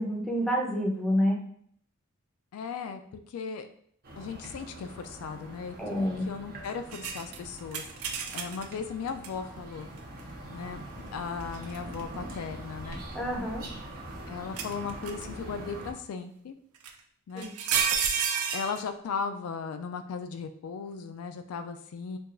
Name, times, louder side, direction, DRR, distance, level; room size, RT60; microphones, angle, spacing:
voice 1, 0.0-1.4 5.8-6.3 13.1-13.6 17.3-17.5, equal, ahead, -2 dB, 0.6 m, -28 dB
voice 2, 2.5-3.7 4.2-7.8 8.3-9.9 10.5-10.8 11.1-13.0 14.3-16.6 17.3-17.5 18.5-22.2, left 5 dB, 75° left, 7 dB, 0.3 m, -37 dB
sound 1, 4.0-15.9, right 1 dB, 45° right, 0.7 m, -43 dB
sound 2, 6.9-8.7 9.2-9.3 11.4-12.0 12.8-13.9 14.6-15.3 16.8-16.9 17.4-18.8, right 7 dB, 75° right, 0.4 m, -30 dB
4.5 x 2.3 x 2.5 m, 0.64 s
head